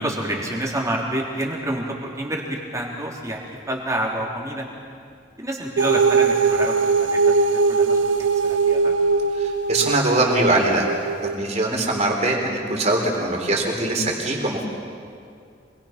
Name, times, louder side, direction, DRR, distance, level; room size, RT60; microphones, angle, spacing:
voice 1, 0.0-4.7 5.4-9.0, right 1 dB, 15° right, -2 dB, 3.4 m, -28 dB
sound 1, 5.8-11.3, right 4 dB, 70° right, 0.6 m, -20 dB
voice 2, 9.4-10.9 11.2-14.6, right 2 dB, 35° right, 0 dB, 3.9 m, -22 dB
26.5 x 21.5 x 5.9 m, 2.3 s
head